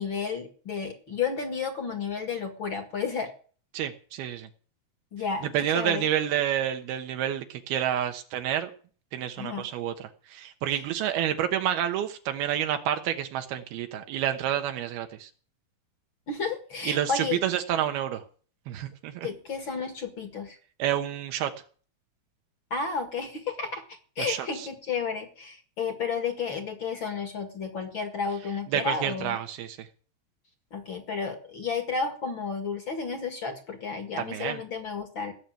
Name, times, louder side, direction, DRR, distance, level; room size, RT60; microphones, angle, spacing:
voice 1, 0.0-3.3 5.1-6.1 9.4-9.7 10.7-10.8 16.3-17.4 19.2-20.6 22.7-23.8 24.2-29.4 30.7-35.3, left 5 dB, 40° left, 6 dB, 2.0 m, -32 dB
voice 2, 3.7-4.5 5.4-8.7 9.1-15.3 16.9-18.2 18.7-19.3 20.8-21.5 24.2-24.7 28.7-29.9 34.2-34.6, right 11 dB, 90° right, 6 dB, 3.1 m, -29 dB
17.5 x 6.9 x 9.1 m, 0.44 s
omnidirectional pair, 4.3 m